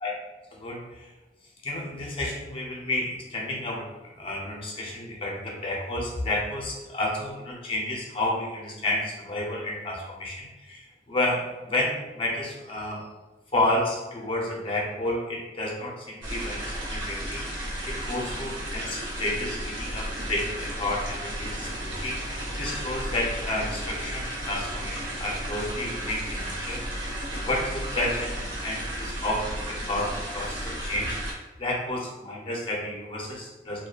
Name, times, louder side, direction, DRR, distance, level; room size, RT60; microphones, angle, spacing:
voice 1, 0.5-1.1 1.6-13.0 13.5-27.1 27.4-33.9, left 1 dB, 30° left, -2 dB, 0.6 m, -31 dB
sound 1, 16.2-31.3, right 1 dB, 75° right, 0.7 m, -34 dB
sound 2, 19.4-28.5, left 1 dB, 80° left, 0.3 m, -46 dB
2.6 x 2.2 x 2.3 m, 1.1 s
head